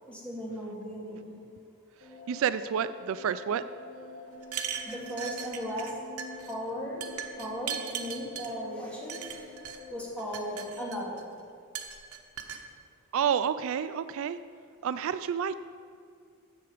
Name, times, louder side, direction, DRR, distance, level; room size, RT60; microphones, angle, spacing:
voice 1, 0.0-1.4 4.9-6.0 6.5-7.1 7.4-9.3 9.9-11.3, equal, 5° left, -5 dB, 2.4 m, -37 dB
sound 1, 2.0-10.9, left 3 dB, 75° left, 3.2 m, -46 dB
voice 2, 2.3-3.6 13.1-14.4 14.8-15.6, right 8 dB, 65° right, 13 dB, 0.3 m, -29 dB
sound 2, 4.4-5.9 6.2-6.5 7.0-8.5 9.1-9.8 10.2-11.2 11.7-12.6, right 9 dB, 90° right, 1.0 m, -38 dB
15.5 x 6.7 x 5.0 m, 2.2 s
head